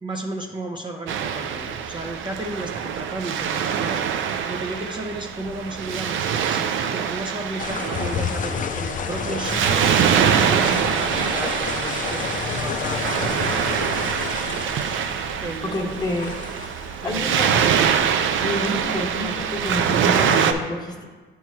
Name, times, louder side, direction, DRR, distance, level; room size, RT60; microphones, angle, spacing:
voice 1, 0.0-14.0 15.4-16.1 17.0-17.6, right 2 dB, 25° right, 1 dB, 0.5 m, -34 dB
Waves surf, 1.1-20.5, right 8 dB, 75° right, 0.5 m, -24 dB
sound 1, 7.6-20.2, left 7 dB, 40° left, 0.4 m, -31 dB
voice 2, 15.6-16.4 17.0-17.9 18.4-21.0, left 1 dB, 20° left, 0 dB, 1.1 m, -28 dB
8.9 x 3.1 x 4.6 m, 1.4 s
cardioid pair, 90°, 20 cm